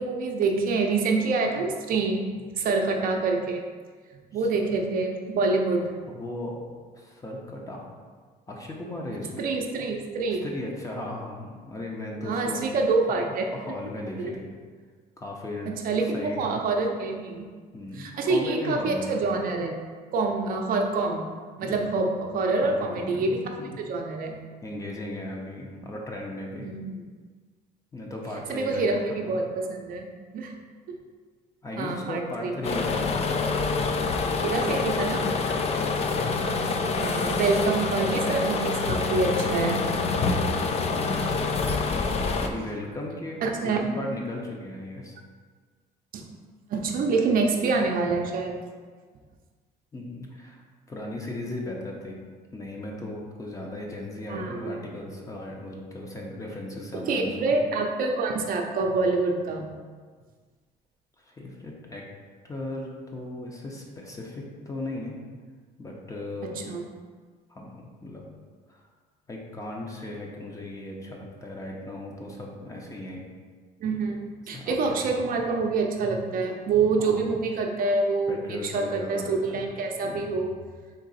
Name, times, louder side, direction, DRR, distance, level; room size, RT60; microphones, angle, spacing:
voice 1, 0.0-3.6 4.1-5.9 9.4-10.4 12.2-13.4 14.2-14.3 15.7-17.5 17.9-19.8 20.1-21.3 21.6-23.5 23.8-24.4 26.6-27.0 28.5-30.1 30.3-30.5 30.9-31.0 31.8-32.9 34.4-35.3 37.0-39.8 43.4-43.8 46.1-46.2 46.7-48.6 54.3-54.8 56.9-59.7 66.4-66.8 73.8-80.5, right 3 dB, 55° right, 2 dB, 0.5 m, -26 dB
voice 2, 6.1-6.7 6.9-7.8 8.5-9.4 10.4-12.6 13.1-13.2 13.5-14.5 15.2-15.8 16.1-16.6 17.7-19.2 21.6-21.9 22.6-23.8 24.6-26.7 27.9-29.4 31.6-33.7 35.7-36.1 42.4-45.2 49.9-50.6 50.9-52.2 52.5-57.5 61.2-62.0 62.4-65.2 65.8-66.8 67.5-68.2 68.7-68.8 69.3-73.2 74.5-75.1 77.0-77.4 78.3-79.7 80.0-80.3, left 1 dB, 20° left, -1 dB, 0.7 m, -36 dB
sound 1, 32.6-42.5, left 4 dB, 40° left, 0.4 m, -26 dB
3.9 x 2.8 x 4.1 m, 1.6 s
cardioid pair, 110°, 17 cm